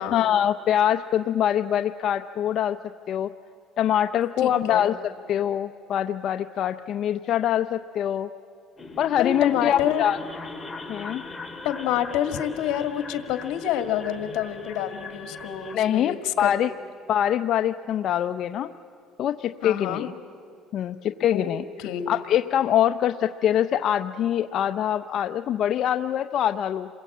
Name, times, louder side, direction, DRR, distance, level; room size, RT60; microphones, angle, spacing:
voice 1, 0.0-2.8 3.1-3.3 3.8-4.9 5.3-8.3 9.0-10.2 10.9-11.2 15.7-16.7 17.1-18.7 19.2-20.1 20.7-21.6 22.1-26.9, left 10 dB, 50° left, 8 dB, 0.6 m, -24 dB
voice 2, 4.4-4.9 9.2-10.1 11.6-16.5 19.6-20.1 21.3-21.5 21.8-22.2, left 10 dB, 75° left, 8 dB, 2.0 m, -28 dB
sound 1, 8.8-15.8, left 3 dB, 15° left, 2.2 m, -39 dB
28.5 x 22.0 x 8.5 m, 2.5 s
cardioid pair, 125°, 0 cm